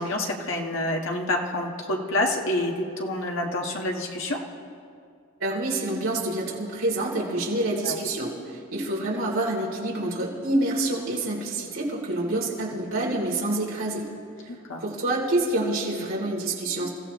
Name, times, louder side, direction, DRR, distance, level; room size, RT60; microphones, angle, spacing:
voice 1, 0.0-4.4 7.8-8.0 14.5-14.8, left 1 dB, 60° left, 0 dB, 1.7 m, -28 dB
voice 2, 5.4-14.1 14.8-16.9, right 2 dB, 65° right, -4 dB, 3.4 m, -27 dB
28.0 x 15.5 x 3.2 m, 2.3 s
head